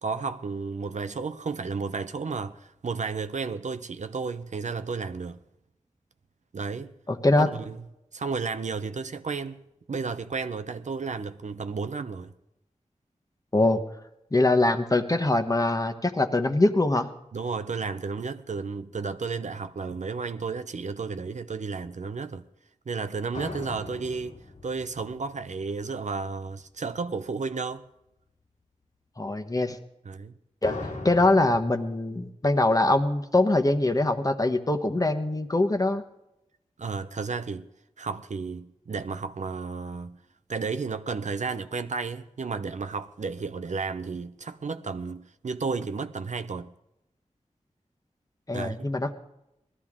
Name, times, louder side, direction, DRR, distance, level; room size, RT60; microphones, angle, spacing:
voice 1, 0.0-5.4 6.5-6.9 7.4-7.8 8.1-9.6 9.9-12.3 17.3-22.4 22.9-24.3 24.6-27.8 30.0-30.3 36.8-37.7 38.0-40.2 40.5-46.7 48.5-48.9, right 4 dB, 70° right, 0.6 m, -32 dB
voice 2, 7.1-7.5 13.5-13.8 14.3-17.1 29.2-29.8 30.6-30.8 31.0-36.0 48.5-49.1, left 2 dB, 30° left, 1.1 m, -23 dB
sound 1, 23.3-26.4 30.6-31.7, left 2 dB, 75° left, 1.8 m, -39 dB
19.5 x 13.5 x 3.7 m
wide cardioid pair, 70°, 13 cm